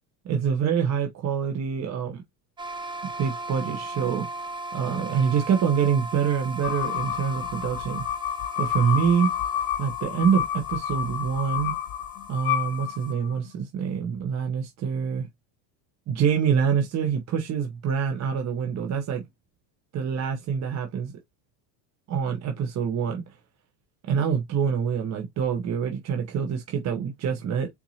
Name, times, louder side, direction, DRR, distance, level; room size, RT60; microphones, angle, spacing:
voice 1, 0.2-2.2 3.2-4.3 4.7-8.1 8.6-9.3 9.8-11.7 12.3-15.3 16.1-19.2 19.9-21.1 22.1-23.2 24.1-27.7, right 7 dB, 35° right, 0.8 m, -25 dB
sound 1, 2.6-13.1, right 2 dB, 10° right, 0.4 m, -38 dB
sound 2, 6.6-13.4, left 11 dB, 45° left, 0.5 m, -30 dB
4.6 x 2.6 x 2.7 m
supercardioid pair, 120°, 49 cm